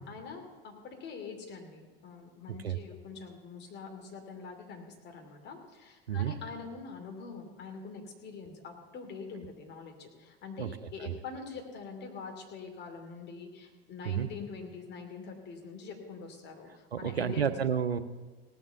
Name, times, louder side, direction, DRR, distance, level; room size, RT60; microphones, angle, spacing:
voice 1, 0.0-17.5, left 5 dB, 35° left, 2 dB, 2.8 m, -44 dB
voice 2, 16.9-18.0, right 8 dB, 85° right, 12 dB, 0.8 m, -30 dB
17.5 x 7.3 x 6.9 m, 1.3 s
figure-of-eight pair, 80°, 30 cm